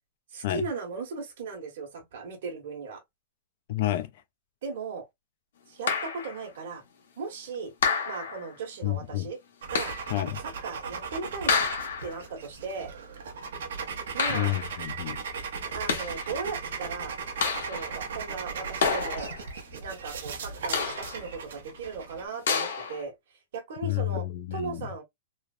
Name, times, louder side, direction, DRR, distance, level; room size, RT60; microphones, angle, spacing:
voice 1, 0.3-3.0 4.6-5.1 5.7-6.8 7.2-7.7 8.1-9.4 9.7-9.9 10.4-11.7 12.0-12.9 14.1-14.6 15.7-17.2 17.6-19.3 19.8-23.1 23.5-24.3 24.5-25.0, right 4 dB, 55° right, 1.2 m, -37 dB
voice 2, 3.7-4.1 8.8-9.3 10.1-10.4 14.3-15.2 23.8-24.9, left 15 dB, 40° left, 0.3 m, -30 dB
sound 1, 5.9-6.4 7.8-8.5 9.7-10.2 11.5-12.2 14.2-14.8 15.7-16.3 17.4-18.0 18.8-19.5 20.7-21.3 22.5-23.0, left 6 dB, 85° left, 1.1 m, -29 dB
sound 2, 9.6-22.2, right 5 dB, 75° right, 0.8 m, -37 dB
3.2 x 2.0 x 2.4 m
supercardioid pair, 180°, 0 cm